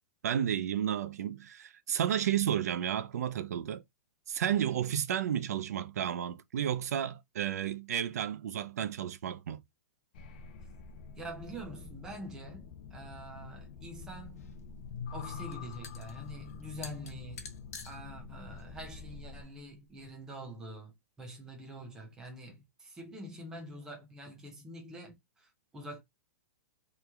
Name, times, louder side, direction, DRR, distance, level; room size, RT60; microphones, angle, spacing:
voice 1, 0.2-3.8 4.3-9.6, right 10 dB, 80° right, 0.4 m, -32 dB
sound 1, 10.1-19.4, left 6 dB, 30° left, 0.4 m, -46 dB
voice 2, 11.2-14.5 15.1-17.5 17.8-20.9 21.2-26.0, right 1 dB, 5° right, 0.6 m, -45 dB
sound 2, 13.9-20.0, left 5 dB, 70° left, 0.8 m, -51 dB
3.1 x 2.1 x 3.4 m
hypercardioid pair, 175°, 8 cm